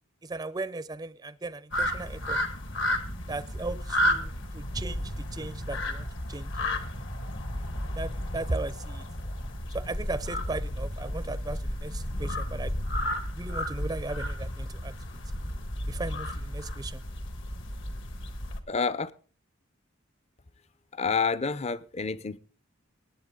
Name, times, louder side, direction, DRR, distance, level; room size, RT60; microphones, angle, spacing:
voice 1, 0.2-2.4 3.3-6.5 7.9-9.0 9.7-12.7 13.3-14.9 15.9-17.0, right 2 dB, 20° right, 0.5 m, -36 dB
sound 1, 1.7-18.6, left 1 dB, 60° left, 1.6 m, -32 dB
voice 2, 18.7-19.1 21.0-22.4, left 5 dB, 30° left, 0.6 m, -28 dB
19.5 x 8.7 x 3.8 m
head